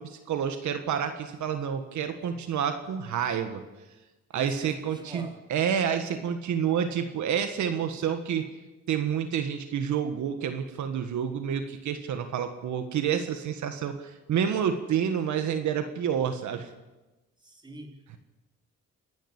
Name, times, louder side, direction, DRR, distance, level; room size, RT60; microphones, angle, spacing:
voice 1, 0.0-3.6 4.3-8.5 8.9-16.7, right 8 dB, 75° right, 7 dB, 1.7 m, -29 dB
voice 2, 4.3-5.4 17.4-18.2, right 1 dB, 15° right, 2 dB, 3.5 m, -44 dB
28.0 x 12.0 x 8.3 m, 1.1 s
cardioid pair, 90°, 30 cm